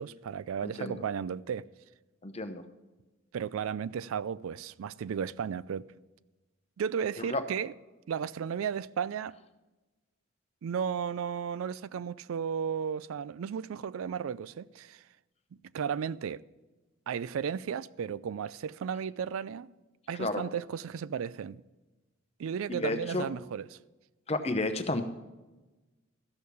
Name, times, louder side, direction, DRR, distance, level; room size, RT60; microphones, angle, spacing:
voice 1, 0.0-1.7 3.3-5.9 6.8-7.7 8.1-9.4 10.6-15.0 15.7-16.4 17.1-19.7 20.1-21.6 22.4-23.8, right 7 dB, 80° right, 0.3 m, -34 dB
voice 2, 0.6-1.0 2.2-2.6 7.2-7.4 20.1-20.4 22.7-23.3 24.3-25.0, left 2 dB, 30° left, 0.8 m, -32 dB
14.0 x 6.5 x 6.8 m
head